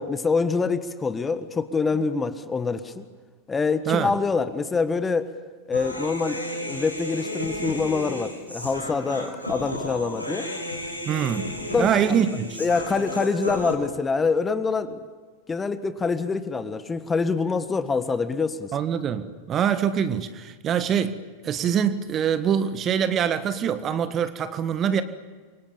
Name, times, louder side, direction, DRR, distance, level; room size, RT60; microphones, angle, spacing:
voice 1, 0.0-3.0 3.5-5.3 5.7-6.4 6.6-10.5 11.7-12.3 12.6-15.0 15.5-18.7, left 4 dB, 15° left, 11 dB, 1.5 m, -25 dB
Human voice, 5.7-13.7, left 1 dB, 85° left, 5.5 m, -33 dB
voice 2, 11.1-12.6 18.7-25.0, right 8 dB, 30° right, 12 dB, 1.5 m, -24 dB
28.5 x 25.0 x 7.1 m, 1.5 s
figure-of-eight pair, 90°, 0 cm